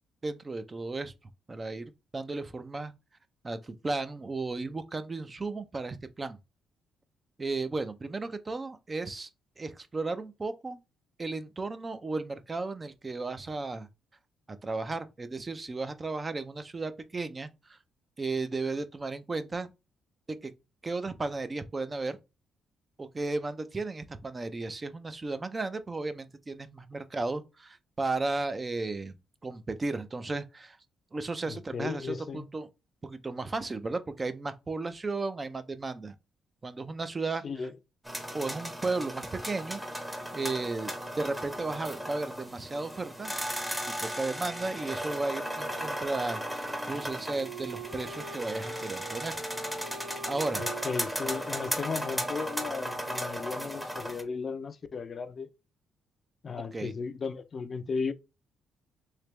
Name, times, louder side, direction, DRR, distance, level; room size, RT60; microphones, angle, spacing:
voice 1, 0.2-1.1 1.5-2.9 3.4-6.4 7.4-9.3 9.6-10.8 11.2-13.9 14.6-17.8 18.2-19.7 20.3-20.5 20.8-22.2 23.0-29.1 29.4-30.8 31.1-32.7 33.0-36.1 36.6-37.7 38.3-43.3 44.0-49.4 50.3-50.6 56.7-56.9, right 3 dB, 25° right, 0.5 m, -34 dB
voice 2, 31.5-32.5 37.4-37.7 50.6-55.5 56.4-58.1, left 5 dB, 45° left, 0.4 m, -35 dB
sound 1, 38.0-54.2, equal, 5° right, 0.8 m, -36 dB
Wind instrument woodwind instrument, 45.3-53.7, right 4 dB, 80° right, 1.9 m, -44 dB
3.3 x 2.9 x 3.1 m
cardioid pair, 90°, 0 cm